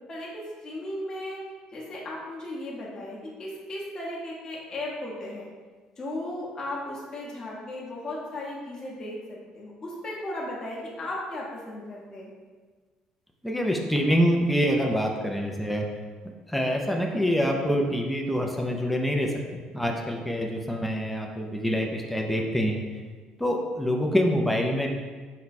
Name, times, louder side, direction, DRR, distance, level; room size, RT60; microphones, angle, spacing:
voice 1, 0.1-1.4 1.7-5.5 6.0-9.2 9.5-12.3, left 1 dB, 25° left, -5 dB, 0.8 m, -36 dB
voice 2, 13.4-15.9 16.5-22.8 23.4-24.9, equal, ahead, 1 dB, 0.4 m, -26 dB
4.5 x 2.2 x 4.0 m, 1.4 s
cardioid pair, 150°, 2 cm